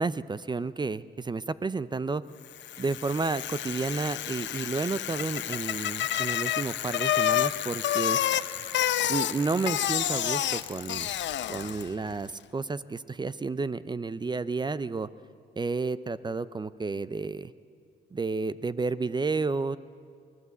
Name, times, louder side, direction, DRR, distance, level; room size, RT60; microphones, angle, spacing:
voice 1, 0.0-2.2 2.8-8.2 9.1-11.1 11.5-15.1 15.6-17.5 18.1-19.8, right 4 dB, 20° right, 16 dB, 0.6 m, -31 dB
Bicycle, 2.5-12.0, left 11 dB, 65° left, 0.8 m, -29 dB
24.5 x 18.5 x 8.2 m, 2.2 s
cardioid pair, 90°, 20 cm